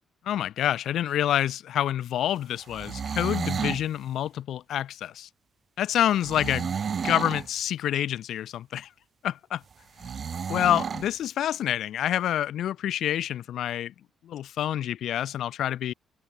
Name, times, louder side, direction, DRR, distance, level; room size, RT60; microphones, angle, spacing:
voice 1, 0.2-5.3 5.8-6.8 7.0-8.9 9.2-9.6 10.0-10.1 10.5-13.9 14.2-15.9, left 11 dB, 75° left, 1.7 m, -27 dB
sound 1, 2.6-3.9 6.2-7.5 10.0-11.1, right 6 dB, 50° right, 1.4 m, -31 dB
cardioid pair, 90°, 0 cm